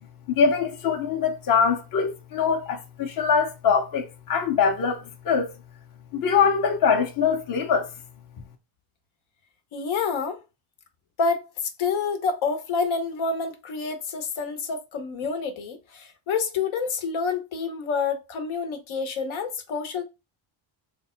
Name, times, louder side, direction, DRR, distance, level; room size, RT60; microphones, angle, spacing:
voice 1, 0.3-5.5 6.1-7.9, left 6 dB, 45° left, 0.9 m, -23 dB
voice 2, 9.7-10.4 11.2-11.5 11.8-20.0, left 5 dB, 75° left, 1.1 m, -28 dB
3.4 x 3.3 x 4.3 m
cardioid pair, 180°, 48 cm